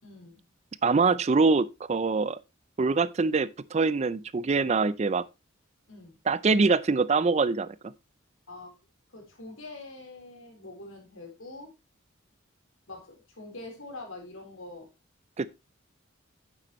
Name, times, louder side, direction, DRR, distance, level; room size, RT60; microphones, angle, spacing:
voice 1, 0.0-0.4 5.9-6.2 8.5-8.8 9.1-11.7 12.9-14.9, left 2 dB, 85° left, 3.9 m, -44 dB
voice 2, 0.8-2.4 2.8-5.2 6.3-7.7 15.4-15.5, right 4 dB, 35° right, 0.4 m, -24 dB
9.1 x 7.5 x 3.0 m
head